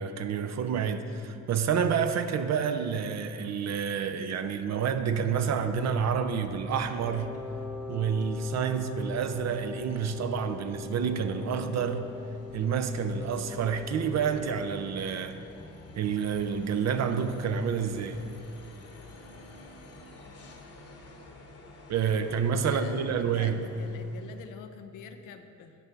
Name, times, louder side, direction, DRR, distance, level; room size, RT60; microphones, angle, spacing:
voice 1, 0.0-7.4 7.9-12.1 12.5-15.4 16.0-18.2 21.9-23.6, right 6 dB, 55° right, 9 dB, 0.6 m, -29 dB
sound 1, 5.6-24.6, left 2 dB, 50° left, 1.2 m, -51 dB
Wind instrument woodwind instrument, 6.9-15.0, left 4 dB, ahead, 1.0 m, -42 dB
voice 2, 22.6-25.8, left 7 dB, 75° left, 8 dB, 0.7 m, -46 dB
10.0 x 5.5 x 4.6 m, 2.6 s
supercardioid pair, 75°, 32 cm